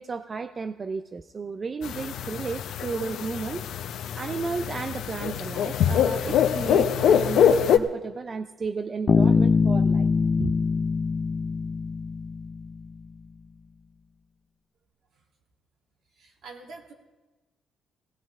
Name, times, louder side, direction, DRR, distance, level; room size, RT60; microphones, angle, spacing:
voice 1, 0.0-10.1 10.4-10.5, right 4 dB, 35° right, 9 dB, 0.5 m, -33 dB
sound 1, 1.8-7.8, left 9 dB, 80° left, 0.8 m, -24 dB
Bass guitar, 9.1-12.9, left 4 dB, 40° left, 0.5 m, -23 dB
voice 2, 16.1-16.9, right 3 dB, 75° right, -1 dB, 3.0 m, -45 dB
18.0 x 17.5 x 3.6 m, 1.2 s
cardioid pair, 90°, 0 cm